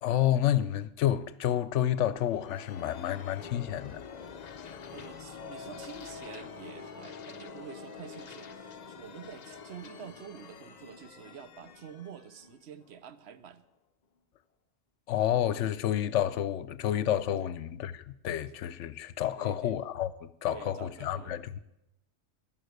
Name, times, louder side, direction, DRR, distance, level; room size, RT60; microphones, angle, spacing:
voice 1, 0.0-4.0 4.6-4.8 15.1-21.6, left 11 dB, 70° left, 0.9 m, -30 dB
sound 1, 1.8-13.3, left 6 dB, 45° left, 0.5 m, -47 dB
voice 2, 4.9-13.7 17.4-17.5 19.3-19.8 20.4-21.4, right 8 dB, 60° right, 0.9 m, -48 dB
sound 2, 5.3-11.1, left 3 dB, 35° right, 1.2 m, -52 dB
12.0 x 11.5 x 6.5 m
omnidirectional pair, 1.3 m